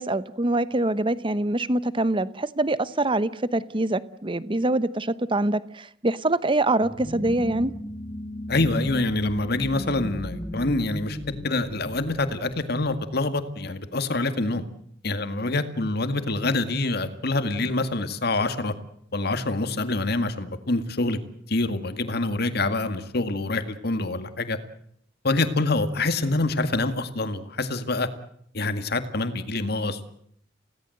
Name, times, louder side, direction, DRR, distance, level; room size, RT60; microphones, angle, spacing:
voice 1, 0.0-7.7, right 2 dB, 25° right, 15 dB, 0.9 m, -24 dB
sound 1, 6.8-13.3, left 1 dB, 20° left, 2.4 m, -36 dB
voice 2, 8.5-11.2 11.4-14.7 15.0-18.7 19.1-21.2 21.5-24.6 25.2-28.1 28.5-30.0, left 2 dB, 55° left, 9 dB, 2.0 m, -26 dB
29.5 x 17.5 x 7.9 m, 0.70 s
head